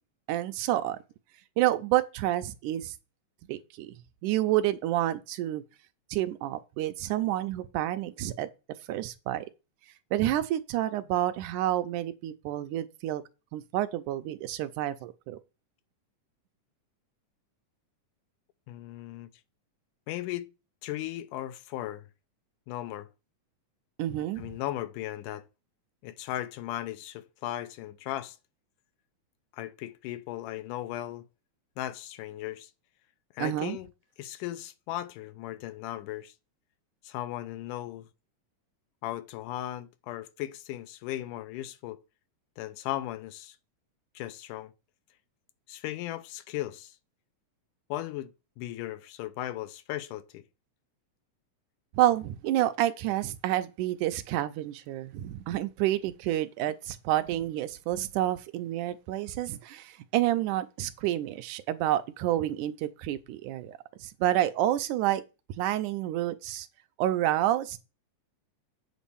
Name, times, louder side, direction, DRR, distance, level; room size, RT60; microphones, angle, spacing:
voice 1, 0.3-1.0 1.6-2.9 3.5-3.9 4.2-5.6 6.1-8.5 8.9-9.5 10.1-13.2 13.5-15.4 24.0-24.5 33.4-33.8 52.0-65.2 65.6-66.7 67.0-67.8, right 14 dB, 80° right, 2.2 m, -29 dB
voice 2, 18.7-19.3 20.1-20.5 20.8-22.1 22.7-23.1 24.4-25.4 26.0-28.4 29.5-31.2 31.8-32.7 33.3-33.9 34.2-36.3 37.0-38.1 39.0-42.0 42.6-43.6 44.2-44.7 45.7-47.0 47.9-50.4, left 14 dB, 90° left, 2.3 m, -37 dB
8.1 x 4.2 x 7.0 m
omnidirectional pair, 3.6 m